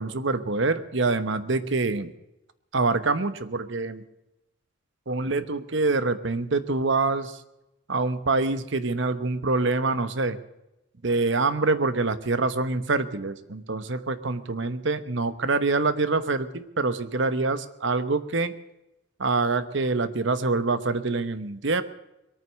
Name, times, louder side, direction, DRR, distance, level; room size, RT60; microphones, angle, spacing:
voice 1, 0.0-2.1 2.7-4.0 5.1-7.4 7.9-10.4 11.0-18.5 19.2-21.8, right 3 dB, 65° right, 13 dB, 1.1 m, -25 dB
22.5 x 9.4 x 6.5 m, 0.91 s
head